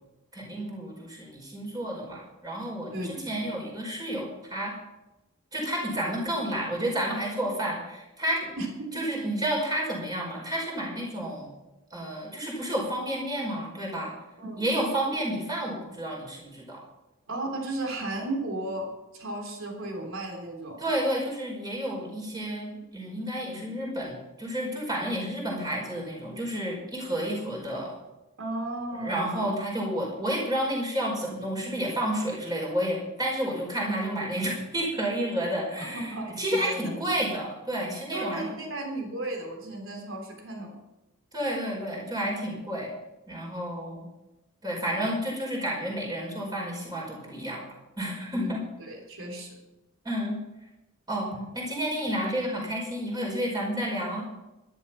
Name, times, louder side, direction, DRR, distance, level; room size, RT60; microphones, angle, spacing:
voice 1, 0.3-4.7 5.5-8.5 8.9-11.6 11.9-14.1 14.6-16.8 20.8-28.0 29.0-38.5 41.3-42.9 43.3-44.1 44.6-47.6 48.0-48.6 50.0-50.4 51.1-54.2, right 1 dB, 20° right, -2 dB, 5.2 m, -30 dB
voice 2, 2.9-3.6 8.6-9.0 14.4-14.6 17.3-20.8 28.4-29.5 35.8-36.8 38.1-40.7 48.3-48.5 48.8-49.6, right 1 dB, 65° right, 2 dB, 3.5 m, -35 dB
13.0 x 12.5 x 5.8 m, 0.99 s
head